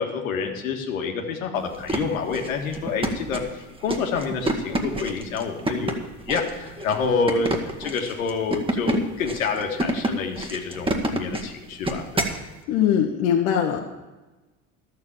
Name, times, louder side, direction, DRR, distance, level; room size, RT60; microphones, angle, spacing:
voice 1, 0.0-6.0 6.3-12.3, left 5 dB, 85° left, 2 dB, 1.8 m, -28 dB
sound 1, 1.7-12.4, right 1 dB, 15° right, 1.7 m, -28 dB
voice 2, 12.7-13.8, left 9 dB, 70° left, 1 dB, 1.5 m, -21 dB
12.0 x 7.4 x 7.4 m, 1.1 s
hypercardioid pair, 80°, 40 cm